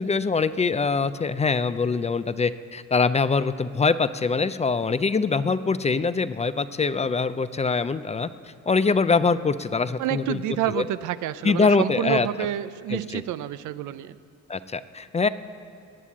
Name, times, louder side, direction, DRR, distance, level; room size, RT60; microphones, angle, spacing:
voice 1, 0.0-8.3 8.7-10.4 10.7-10.8 11.4-12.3 12.9-13.2 14.5-15.3, left 4 dB, 20° left, 13 dB, 0.4 m, -23 dB
voice 2, 10.0-14.2, right 12 dB, 80° right, 14 dB, 0.6 m, -28 dB
18.5 x 8.3 x 7.4 m, 2.5 s
cardioid pair, 90°, 30 cm